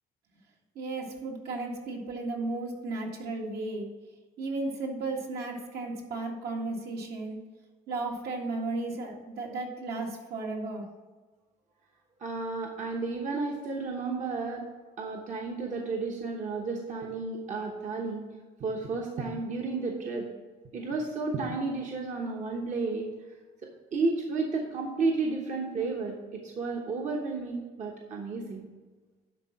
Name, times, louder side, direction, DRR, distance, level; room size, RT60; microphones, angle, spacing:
voice 1, 0.8-3.9 4.4-7.4 7.9-10.8, right 3 dB, 70° right, 0 dB, 1.8 m, -34 dB
voice 2, 12.2-14.6 15.0-18.3 18.6-20.3 20.7-23.1 23.9-28.7, right 3 dB, 45° right, 0 dB, 1.1 m, -32 dB
10.5 x 3.8 x 5.8 m, 1.4 s
cardioid pair, 110°, 17 cm